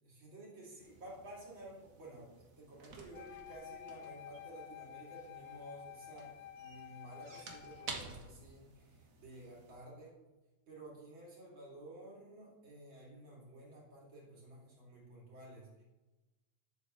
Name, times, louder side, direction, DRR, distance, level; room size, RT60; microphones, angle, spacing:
voice 1, 0.0-2.3 2.6-10.2 10.7-15.8, right 1 dB, 40° right, -5 dB, 3.2 m, -53 dB
sound 1, 0.8-9.7, right 4 dB, 65° right, 0.8 m, -53 dB
Wind instrument woodwind instrument, 3.1-8.0, left 10 dB, 80° left, 1.5 m, -51 dB
11.5 x 7.3 x 3.1 m, 1.1 s
omnidirectional pair, 3.3 m